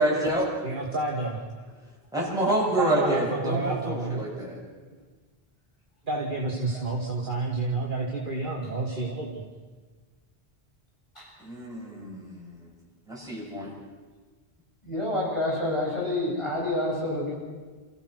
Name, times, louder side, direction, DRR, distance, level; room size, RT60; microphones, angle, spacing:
voice 1, 0.0-0.5 2.1-4.6 11.4-12.7 13.1-13.7, right 1 dB, 5° right, -5 dB, 7.0 m, -27 dB
voice 2, 0.6-1.4 2.7-4.3 6.0-9.4, right 3 dB, 55° right, -3 dB, 2.6 m, -29 dB
voice 3, 14.8-17.3, left 1 dB, 30° left, -4 dB, 7.8 m, -28 dB
29.0 x 15.5 x 6.3 m, 1.4 s
omnidirectional pair, 1.0 m